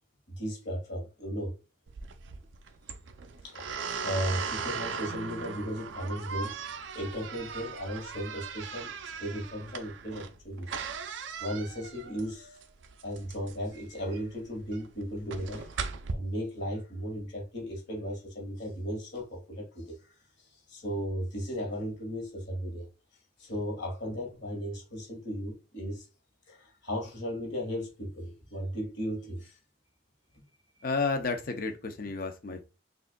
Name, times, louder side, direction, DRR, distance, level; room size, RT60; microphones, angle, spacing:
voice 1, 0.3-1.5 3.4-3.7 4.0-8.9 9.2-10.7 11.4-12.6 13.0-15.9 16.1-20.0 20.7-22.9 23.4-26.1 26.5-29.6, equal, 65° left, 1.8 m, -36 dB
sound 1, 1.9-16.1, right 5 dB, 80° right, 0.5 m, -39 dB
voice 2, 30.8-32.6, left 4 dB, 50° left, 0.6 m, -31 dB
6.0 x 2.5 x 2.2 m
head